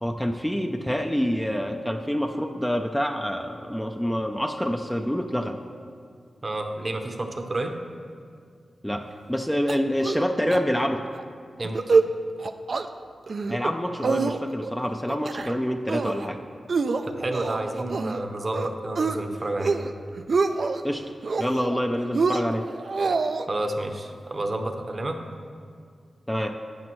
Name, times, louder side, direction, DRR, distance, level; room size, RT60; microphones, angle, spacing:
voice 1, 0.0-5.6 8.8-11.1 13.5-16.4 20.8-21.0 21.4-22.7 26.3-26.6, equal, 5° left, 4 dB, 0.4 m, -27 dB
voice 2, 6.4-7.7 11.6-11.8 17.1-19.8 23.5-25.2, right 1 dB, 40° right, 5 dB, 0.8 m, -30 dB
sound 1, 9.7-10.2 10.5-10.6 11.0-11.2 11.6-12.1 12.4-12.9 13.3-13.7 14.0-14.7 15.1-15.6 15.9-16.3 16.7-18.2 18.5-19.2 19.5-19.9 20.2-20.8 21.2-21.8 22.1-23.5, right 4 dB, 60° right, 0.4 m, -25 dB
12.0 x 8.4 x 3.1 m, 2.2 s
wide cardioid pair, 80°, 0 cm